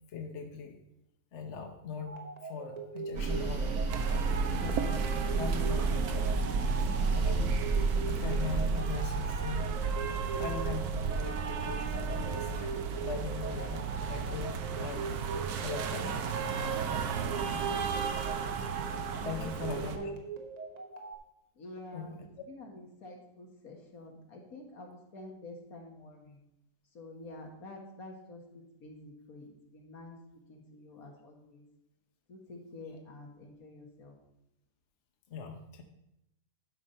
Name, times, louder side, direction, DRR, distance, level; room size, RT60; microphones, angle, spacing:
voice 1, 0.1-0.8 1.3-4.8 5.3-7.6 8.1-9.8 10.4-15.1 15.6-16.2 16.8-16.9 17.4-17.7 19.2-20.0 21.9-22.3 35.3-35.8, left 5 dB, 55° left, 3 dB, 1.1 m, -41 dB
sound 1, 2.1-21.2, right 4 dB, 30° right, 0.9 m, -42 dB
sound 2, 3.1-8.8, right 3 dB, 55° right, 1.2 m, -31 dB
sound 3, 3.9-20.0, right 5 dB, 85° right, 1.3 m, -34 dB
voice 2, 19.2-20.1 21.6-22.1 22.5-26.4 26.9-30.2 30.5-31.6 32.3-34.1, left 2 dB, 70° left, 1 dB, 1.9 m, -48 dB
12.0 x 5.4 x 4.3 m, 0.85 s
omnidirectional pair, 1.6 m